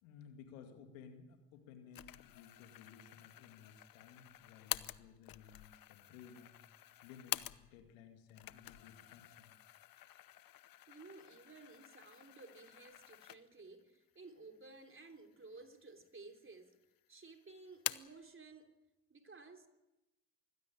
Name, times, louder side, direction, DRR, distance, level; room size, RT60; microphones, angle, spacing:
voice 1, 0.0-9.5, left 6 dB, 85° left, 2.4 m, -57 dB
sound 1, 1.9-7.9 8.3-13.7 14.2-14.3 15.1-15.8 16.1-16.8 17.1-18.2, left 14 dB, 60° left, 0.9 m, -47 dB
voice 2, 10.9-16.8 17.1-18.7 19.1-19.7, right 3 dB, 35° right, 3.4 m, -55 dB
24.0 x 16.0 x 8.7 m
hypercardioid pair, 40°, 38 cm